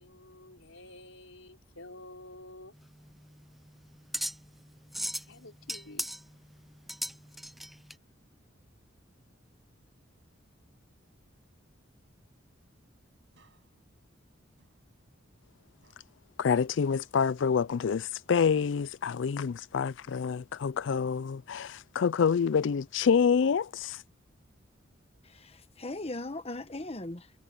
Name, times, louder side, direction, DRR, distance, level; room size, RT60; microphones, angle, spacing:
voice 1, 0.0-2.7 5.2-6.2, left 2 dB, 85° left, 4.9 m, -50 dB
sound 1, 2.8-7.9, equal, ahead, 0.5 m, -38 dB
sound 2, 13.3-15.6 15.8-18.5 18.9-20.5, right 2 dB, 65° right, 8.0 m, -70 dB
voice 2, 16.4-24.0, left 6 dB, 65° left, 0.4 m, -27 dB
voice 3, 25.2-27.3, left 2 dB, 30° left, 1.3 m, -39 dB
head